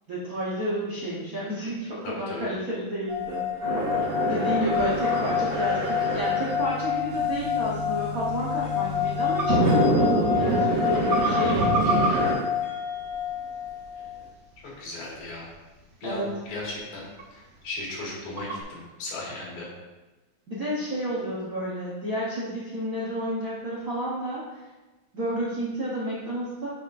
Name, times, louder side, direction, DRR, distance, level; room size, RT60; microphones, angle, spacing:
voice 1, 0.1-3.7 4.2-12.0 16.0-16.3 20.5-24.6 25.1-26.7, right 1 dB, 90° right, -7 dB, 0.7 m, -31 dB
voice 2, 2.0-2.5 4.3-4.4 14.6-15.5 16.0-17.1 17.3-19.7, left 2 dB, 75° left, -5 dB, 3.4 m, -36 dB
sound 1, 3.1-14.3, left 9 dB, 45° left, 2.5 m, -28 dB
sound 2, 3.6-12.3, right 1 dB, 35° right, 2.7 m, -27 dB
sound 3, 8.3-18.6, right 3 dB, 70° right, 1.1 m, -36 dB
8.7 x 5.8 x 2.5 m, 1.2 s
omnidirectional pair, 3.4 m